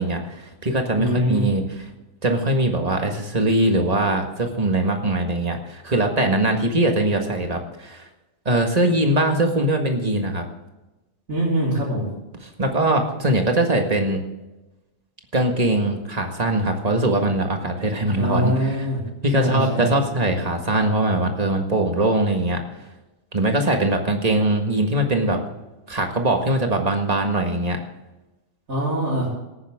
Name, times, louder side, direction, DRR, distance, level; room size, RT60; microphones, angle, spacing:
voice 1, 0.0-1.6 2.2-8.0 8.5-10.4 12.4-14.2 15.3-18.9 19.2-22.6 23.3-25.4 25.9-27.8, right 1 dB, 30° right, 3 dB, 1.8 m, -21 dB
voice 2, 1.0-1.4 11.3-12.0 18.2-19.0 19.3-20.0 28.7-29.3, right 1 dB, 90° right, -8 dB, 4.5 m, -23 dB
17.5 x 9.8 x 3.7 m, 1.0 s
omnidirectional pair, 1.4 m